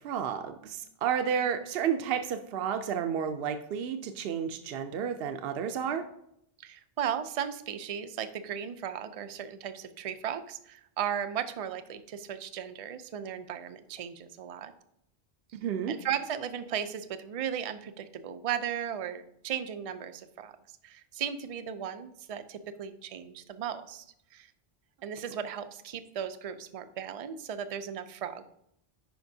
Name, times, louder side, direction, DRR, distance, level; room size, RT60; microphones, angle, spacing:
voice 1, 0.0-6.0 15.6-15.9, right 8 dB, 70° right, 6 dB, 0.8 m, -31 dB
voice 2, 6.6-14.7 15.9-20.5 20.8-24.0 24.3-24.5 25.0-28.4, right 9 dB, 50° right, 10 dB, 0.4 m, -36 dB
10.5 x 5.1 x 2.7 m, 0.75 s
omnidirectional pair, 1.1 m